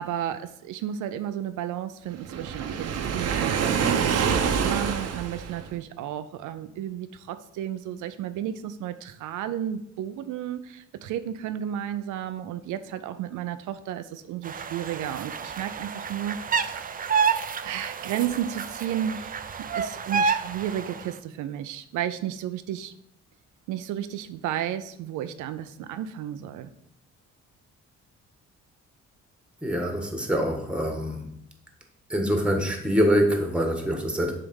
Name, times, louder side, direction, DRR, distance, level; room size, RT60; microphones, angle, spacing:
voice 1, 0.0-4.3 4.6-17.3 17.6-22.9 23.7-26.7, right 10 dB, 85° right, 11 dB, 0.5 m, -33 dB
Waves surf, 2.2-5.7, right 6 dB, 55° right, 0.8 m, -26 dB
sound 1, 14.4-21.1, right 6 dB, 30° right, 0.4 m, -29 dB
voice 2, 29.6-31.2 32.1-34.3, equal, 5° right, 3 dB, 1.4 m, -24 dB
7.2 x 3.4 x 5.2 m, 0.73 s
cardioid pair, 90°, 30 cm